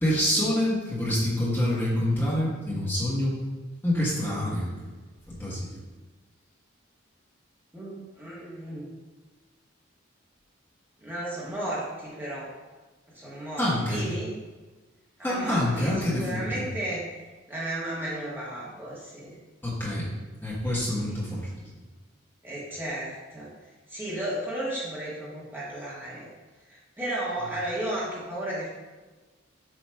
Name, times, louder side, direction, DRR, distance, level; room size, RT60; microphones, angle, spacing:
voice 1, 0.0-3.4 3.8-4.7 5.3-5.8 13.6-14.0 15.2-16.6 19.6-20.1 20.4-21.4, left 1 dB, 10° left, -8 dB, 1.3 m, -26 dB
voice 2, 7.7-8.9 11.0-12.5 13.1-14.3 15.2-17.0 17.5-19.4 21.0-21.2 22.4-23.5 23.9-26.3 26.7-28.7, right 1 dB, 10° right, -7 dB, 1.5 m, -34 dB
7.5 x 3.1 x 4.6 m, 1.3 s
head